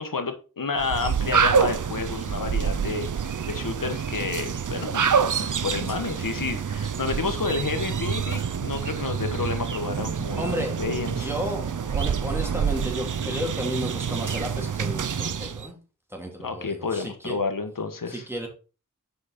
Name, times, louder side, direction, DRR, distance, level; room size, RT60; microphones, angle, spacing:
voice 1, 0.0-5.1 5.4-11.3 16.4-18.2, left 4 dB, 75° left, 6 dB, 1.4 m, -30 dB
sound 1, 0.8-15.7, right 6 dB, 65° right, 0.6 m, -27 dB
voice 2, 10.4-10.7 11.0-15.8 16.1-17.4 18.1-18.5, equal, 5° right, 0 dB, 2.8 m, -33 dB
7.8 x 5.1 x 4.2 m, 0.34 s
wide cardioid pair, 55°, 33 cm